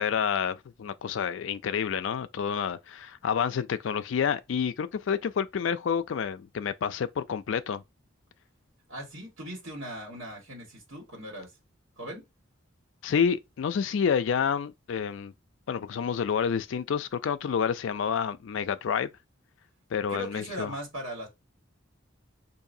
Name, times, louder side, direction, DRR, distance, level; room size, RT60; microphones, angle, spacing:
voice 1, 0.0-7.8 13.0-15.3 15.7-19.1 19.9-20.7, left 7 dB, 70° left, 0.4 m, -29 dB
voice 2, 8.9-11.5 12.0-12.2 20.1-21.3, equal, 75° right, 1.6 m, -39 dB
4.7 x 2.6 x 2.6 m
head